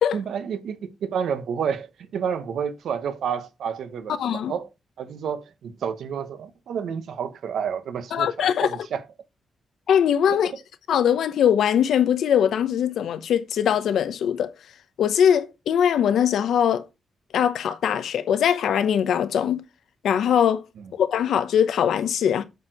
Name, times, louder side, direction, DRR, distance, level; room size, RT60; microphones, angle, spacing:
voice 1, 0.1-4.7 5.0-9.0 10.3-10.6 20.8-20.9, right 7 dB, 80° right, 1.1 m, -30 dB
voice 2, 4.2-4.5 8.1-8.7 9.9-10.5 10.9-14.5 15.0-16.8 17.3-19.6 20.0-20.6 20.9-22.4, left 9 dB, 85° left, 0.9 m, -21 dB
8.2 x 4.6 x 4.7 m
wide cardioid pair, 135°, 0 cm